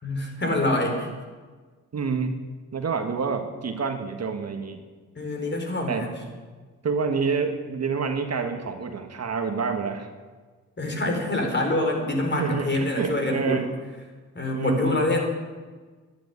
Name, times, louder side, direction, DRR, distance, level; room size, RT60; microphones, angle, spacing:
voice 1, 0.0-1.1 5.2-6.1 10.8-13.6 14.3-15.2, left 1 dB, 30° left, 2 dB, 4.7 m, -25 dB
voice 2, 1.9-2.4 2.7-4.8 5.9-6.1 6.8-10.1 12.3-13.7 14.5-15.1, right 5 dB, 50° right, 6 dB, 1.7 m, -28 dB
11.5 x 11.0 x 9.6 m, 1.4 s
supercardioid pair, 65°, 34 cm